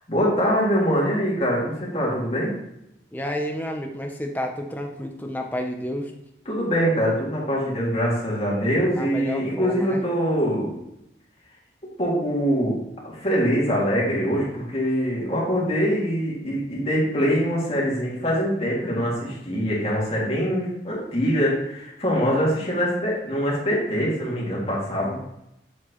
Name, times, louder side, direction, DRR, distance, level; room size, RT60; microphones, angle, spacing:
voice 1, 0.1-2.6 6.5-10.7 12.0-12.8 13.0-25.2, equal, 35° left, -5 dB, 2.3 m, -23 dB
voice 2, 3.1-6.1 9.0-10.0, equal, 10° left, 3 dB, 0.7 m, -30 dB
7.3 x 6.0 x 3.1 m, 0.84 s
head